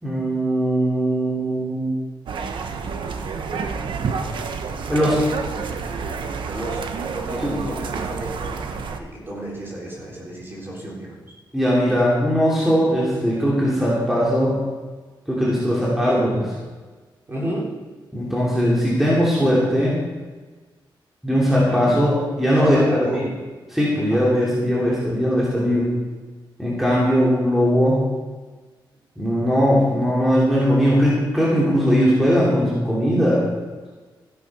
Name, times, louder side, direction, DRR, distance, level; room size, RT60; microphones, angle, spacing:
voice 1, 0.0-1.9 4.9-5.2 7.4-7.6 11.5-14.6 15.3-16.6 18.1-20.0 21.2-23.2 23.7-25.9 26.6-28.1 29.2-33.5, equal, 5° right, -6 dB, 3.0 m, -19 dB
sound 1, 2.3-9.0, right 5 dB, 75° right, 1.1 m, -29 dB
voice 2, 6.5-6.9 7.1-8.5 8.9-11.2 17.3-17.8 21.8-22.0 22.5-23.3 24.1-24.2, right 1 dB, 25° right, -4 dB, 3.9 m, -30 dB
15.0 x 9.6 x 5.5 m, 1.4 s
wide cardioid pair, 165°, 8 cm